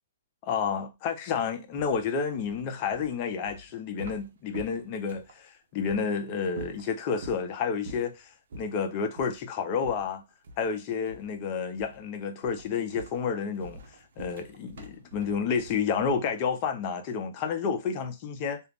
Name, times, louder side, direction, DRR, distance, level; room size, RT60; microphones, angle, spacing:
voice 1, 0.4-8.3 8.5-10.2 10.6-13.8 14.2-18.6, left 6 dB, 35° left, 0.5 m, -30 dB
sound 1, 1.7-5.4 5.8-6.0 6.5-7.5 7.8-8.2 8.5-8.7 9.1-9.4 9.8-10.8 11.1-11.4 11.8-12.1 12.4-16.3, right 1 dB, 65° right, 0.6 m, -46 dB
2.4 x 2.0 x 3.3 m
hypercardioid pair, 145°, 0 cm